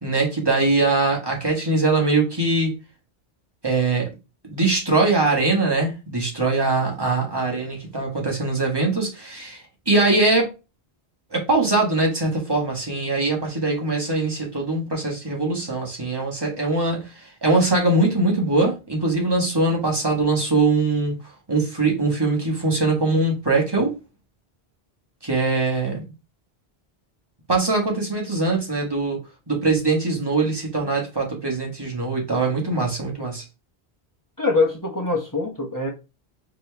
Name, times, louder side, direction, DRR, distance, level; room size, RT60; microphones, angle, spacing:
voice 1, 0.0-2.7 3.6-4.1 4.4-10.5 11.3-21.1 21.5-23.9 25.2-26.0 27.5-33.4, right 3 dB, 25° right, -1 dB, 1.4 m, -22 dB
voice 2, 34.4-35.9, left 3 dB, 20° left, -1 dB, 0.9 m, -23 dB
4.3 x 2.9 x 3.3 m, 0.28 s
omnidirectional pair, 1.1 m